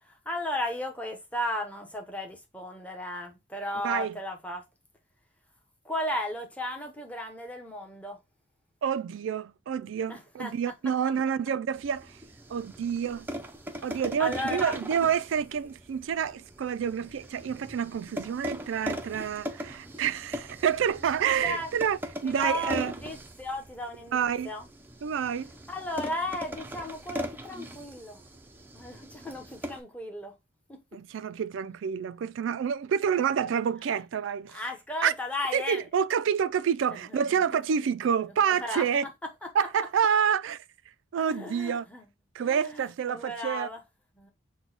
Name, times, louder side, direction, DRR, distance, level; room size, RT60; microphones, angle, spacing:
voice 1, 0.0-4.6 5.8-8.2 10.1-10.5 13.7-14.8 21.4-21.7 22.2-24.7 25.7-28.2 28.7-30.4 30.7-30.8 34.5-35.8 36.9-37.6 38.5-38.9 39.2-39.5 41.2-42.0 42.4-43.8 44.2-44.3, left 1 dB, 5° left, 0.8 m, -35 dB
voice 2, 3.8-4.2 8.8-12.1 12.5-13.3 13.8-22.9 24.1-24.5 25.0-25.5 30.9-34.6 35.0-35.1 35.5-39.1 39.6-40.6 41.1-41.9 42.3-43.7, right 7 dB, 80° right, 0.3 m, -28 dB
sound 1, 11.8-29.8, equal, 10° right, 0.4 m, -40 dB
6.0 x 2.2 x 3.9 m
head